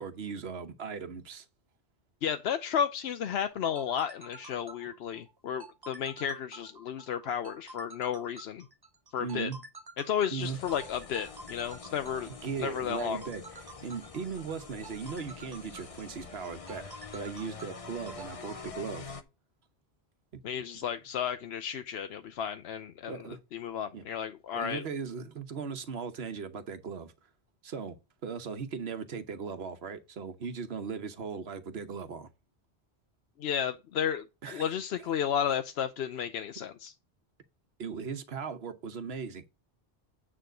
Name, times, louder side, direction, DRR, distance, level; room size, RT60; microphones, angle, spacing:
voice 1, 0.0-1.5 9.2-9.6 10.3-10.6 12.2-13.4 13.8-19.1 23.1-23.4 23.9-24.0 24.5-27.1 27.6-28.0 28.2-32.3 34.4-34.7 37.8-39.5, right 5 dB, 70° right, 1.3 m, -38 dB
voice 2, 2.2-8.6 9.1-9.5 10.0-12.3 12.6-13.2 20.4-23.1 23.5-24.8 33.4-36.9, left 8 dB, 75° left, 0.9 m, -33 dB
sound 1, 3.5-18.3, right 2 dB, 25° right, 0.8 m, -49 dB
sound 2, 10.4-19.2, left 4 dB, 35° left, 0.8 m, -46 dB
9.2 x 3.6 x 6.0 m
omnidirectional pair, 1.1 m